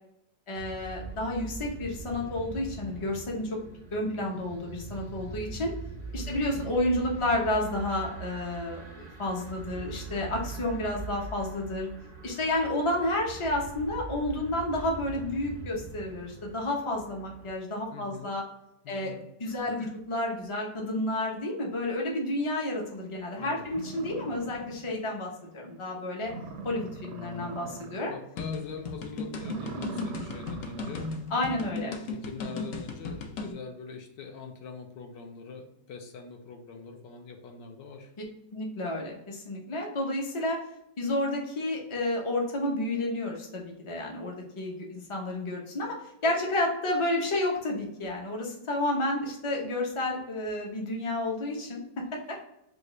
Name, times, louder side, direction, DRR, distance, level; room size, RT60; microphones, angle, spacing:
voice 1, 0.5-3.5 3.9-5.7 6.1-11.9 12.2-18.4 18.9-19.1 19.4-26.3 26.6-28.1 31.3-31.9 38.5-40.6 41.0-45.9 46.2-51.8 52.3-52.4, left 1 dB, 45° left, -1 dB, 0.4 m, -31 dB
sound 1, 0.6-17.5, right 3 dB, 55° right, 0.4 m, -42 dB
voice 2, 6.2-6.6 17.9-18.3 18.8-19.9 23.4-23.6 28.1-31.1 31.7-38.1, left 4 dB, 80° left, 3 dB, 1.4 m, -44 dB
sound 2, 23.2-23.3 23.7-25.1 25.4-25.5 25.9-26.0 26.2-28.2 28.5-28.8 29.3-31.3, right 3 dB, 75° right, 1.2 m, -41 dB
sound 3, 28.4-33.5, left 3 dB, 65° left, 0.9 m, -36 dB
4.9 x 2.5 x 3.1 m, 0.83 s
omnidirectional pair, 2.0 m